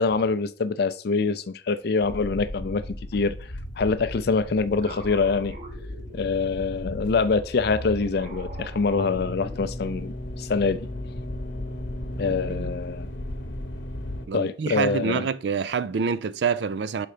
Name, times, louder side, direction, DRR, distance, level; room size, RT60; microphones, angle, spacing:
voice 1, 0.0-2.8 3.1-3.4 3.8-5.5 6.1-10.9 12.2-13.1 14.3-15.2, left 4 dB, 60° left, 0.4 m, -25 dB
sound 1, 2.0-14.3, left 1 dB, 85° left, 0.9 m, -36 dB
sound 2, 3.9-6.7 7.3-10.0, right 2 dB, 45° right, 1.1 m, -45 dB
voice 2, 12.2-12.7 14.3-17.1, right 5 dB, 65° right, 0.4 m, -27 dB
5.6 x 3.9 x 4.9 m
head